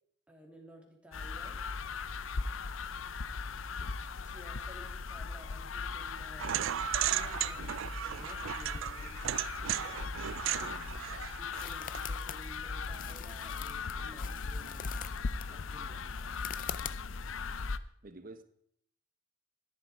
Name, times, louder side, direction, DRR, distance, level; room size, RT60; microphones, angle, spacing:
voice 1, 0.3-1.6 4.2-10.8 11.3-15.0 15.5-16.4, equal, 5° right, 2.6 m, -55 dB
sound 1, 1.1-17.8, left 4 dB, 85° left, 0.6 m, -39 dB
sound 2, 6.4-12.0, right 11 dB, 85° right, 0.4 m, -35 dB
sound 3, 10.6-17.4, left 10 dB, 45° left, 0.5 m, -46 dB
voice 2, 10.6-11.0 17.7-18.4, right 2 dB, 45° right, 1.1 m, -52 dB
14.0 x 10.5 x 4.7 m
head